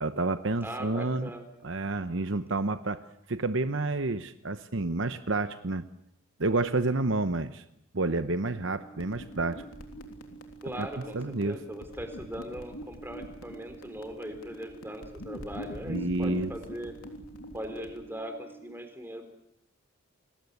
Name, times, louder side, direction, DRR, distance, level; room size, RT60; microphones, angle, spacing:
voice 1, 0.0-1.3 1.6-3.0 3.3-5.9 6.4-7.6 7.9-9.6 10.7-10.9 11.1-11.6 15.8-16.5, right 2 dB, 60° right, 11 dB, 0.9 m, -29 dB
voice 2, 0.6-1.5 10.6-16.9 17.5-19.2, equal, 10° right, 7 dB, 3.7 m, -40 dB
sound 1, 8.6-18.6, right 6 dB, 45° right, 4.2 m, -51 dB
sound 2, 9.0-18.0, left 1 dB, 85° left, 3.5 m, -44 dB
28.5 x 20.5 x 8.2 m, 0.77 s
head